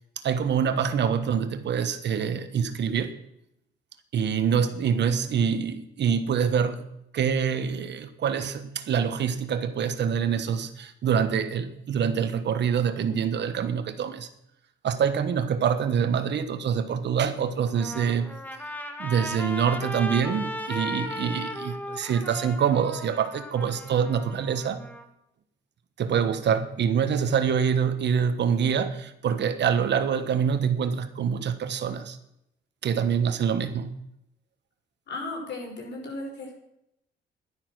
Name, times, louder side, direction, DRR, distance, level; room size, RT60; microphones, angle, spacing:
voice 1, 0.2-3.1 4.1-6.9 7.1-14.3 14.8-18.3 19.0-24.8 26.0-32.2 32.8-33.9, right 7 dB, 60° right, 1.3 m, -25 dB
Trumpet, 17.6-25.0, equal, 10° left, 1.7 m, -36 dB
voice 2, 35.1-36.6, left 2 dB, 60° left, 5.4 m, -35 dB
11.5 x 11.5 x 6.2 m
cardioid pair, 90°, 20 cm